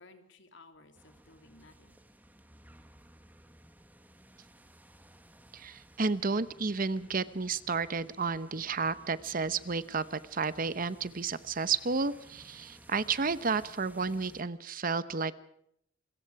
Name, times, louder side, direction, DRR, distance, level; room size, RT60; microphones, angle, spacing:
voice 1, 0.0-2.0, left 3 dB, 65° left, 6 dB, 3.0 m, -57 dB
sound 1, 0.9-14.4, right 1 dB, 10° right, 1.6 m, -57 dB
voice 2, 5.5-15.3, right 4 dB, 45° right, 15 dB, 0.9 m, -32 dB
28.0 x 22.5 x 4.8 m, 0.72 s
head